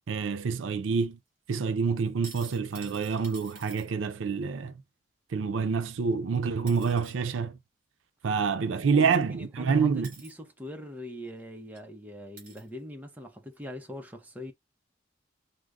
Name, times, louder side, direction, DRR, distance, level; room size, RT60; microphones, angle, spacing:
voice 1, 0.1-1.2 1.5-4.7 5.3-7.6 8.2-10.1, right 5 dB, 85° right, 0.4 m, -27 dB
sound 1, 2.0-3.9 6.1-6.2 6.7-7.1 9.0-9.1 10.0-10.3 11.3-11.4 11.7-11.8 12.4-12.7 13.5-13.6, right 4 dB, 45° right, 1.9 m, -49 dB
voice 2, 8.8-14.5, left 1 dB, 10° right, 0.6 m, -42 dB
4.9 x 2.1 x 2.3 m
head